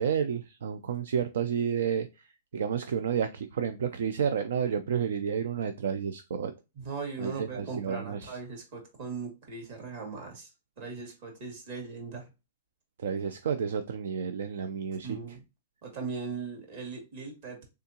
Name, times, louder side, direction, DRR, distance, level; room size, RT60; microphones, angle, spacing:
voice 1, 0.0-2.1 2.5-6.5 7.2-8.4 13.0-15.2, right 7 dB, 80° right, 0.4 m, -30 dB
voice 2, 6.7-10.5 10.8-12.3 15.0-15.4 15.8-17.6, right 5 dB, 55° right, 2.1 m, -39 dB
3.7 x 3.4 x 2.8 m
hypercardioid pair, 145°, 0 cm